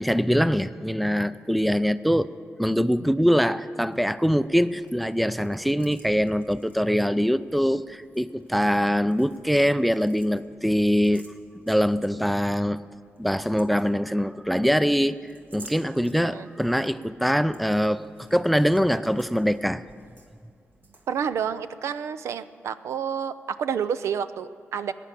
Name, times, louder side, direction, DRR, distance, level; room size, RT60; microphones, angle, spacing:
voice 1, 0.0-2.3 2.6-11.3 11.7-12.8 13.2-15.2 15.5-18.0 18.3-19.8, equal, ahead, 15 dB, 0.4 m, -23 dB
sound 1, 3.9-21.5, right 2 dB, 45° right, 1.9 m, -55 dB
voice 2, 21.1-24.9, right 7 dB, 85° right, 13 dB, 0.5 m, -29 dB
17.0 x 10.0 x 8.4 m, 2.2 s
wide cardioid pair, 115°, 5 cm